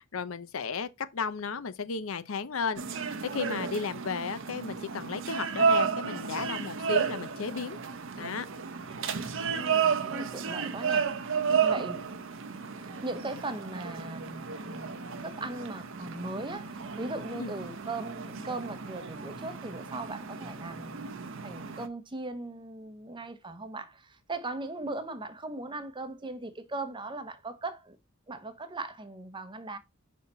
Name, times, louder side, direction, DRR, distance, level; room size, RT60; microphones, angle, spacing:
voice 1, 0.0-7.8 8.2-8.5 11.5-11.6 17.3-17.5, left 5 dB, 65° left, 0.6 m, -34 dB
sound 1, 2.8-21.9, right 6 dB, 60° right, 0.8 m, -32 dB
voice 2, 9.4-11.2 11.6-12.0 12.8-14.9 15.2-21.1 21.4-28.0 28.3-29.8, right 2 dB, 20° right, 0.7 m, -39 dB
5.6 x 4.2 x 4.2 m
head